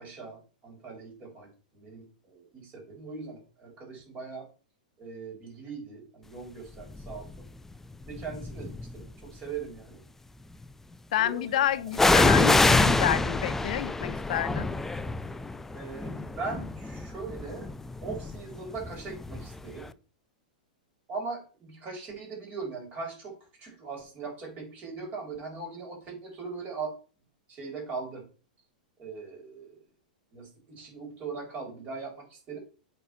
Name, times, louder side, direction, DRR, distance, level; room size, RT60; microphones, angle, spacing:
voice 1, 0.0-4.5 5.0-7.5 8.0-10.0 11.2-11.6 15.7-17.7 18.0-19.9 21.1-26.9 27.5-28.2 29.0-29.8 30.3-32.6, right 4 dB, 35° right, 4.6 m, -40 dB
sound 1, 7.0-7.4 8.1-9.0 11.9-19.6 19.9-20.0, left 2 dB, 10° left, 0.4 m, -26 dB
voice 2, 11.1-14.7, left 12 dB, 65° left, 0.6 m, -29 dB
8.2 x 4.3 x 4.3 m
hypercardioid pair, 110°, 5 cm